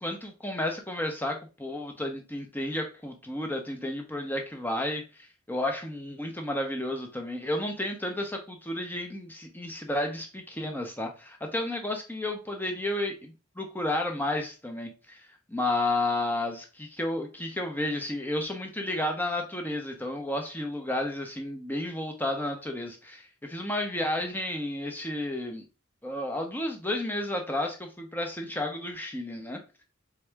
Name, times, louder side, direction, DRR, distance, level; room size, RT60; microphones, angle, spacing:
voice 1, 0.0-25.6 26.0-29.6, left 1 dB, 10° left, 3 dB, 0.7 m, -32 dB
4.2 x 3.5 x 3.3 m, 0.31 s
head